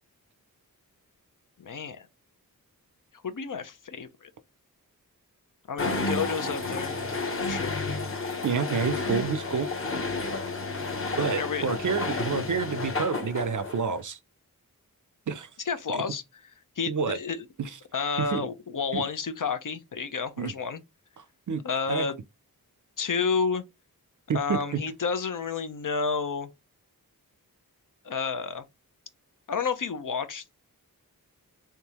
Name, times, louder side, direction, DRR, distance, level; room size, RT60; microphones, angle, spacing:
voice 1, 1.6-2.1 3.2-4.3 5.7-7.0 7.4-7.8 11.1-11.7 15.6-16.5 16.8-17.5 17.9-20.8 21.6-22.1 23.0-23.6 24.3-26.5 28.0-28.6 29.5-30.5, left 5 dB, 60° left, 0.7 m, -30 dB
sound 1, 5.8-14.0, left 3 dB, 35° left, 1.0 m, -31 dB
voice 2, 8.4-9.7 11.2-14.2 15.3-15.5 15.9-16.0 16.9-17.2 17.6-17.7 18.2-18.5 18.9-19.0 20.4-20.5 21.5-21.6 21.9-22.1 24.3-24.6, right 5 dB, 55° right, 0.5 m, -28 dB
3.6 x 2.7 x 2.9 m
wide cardioid pair, 60°, 36 cm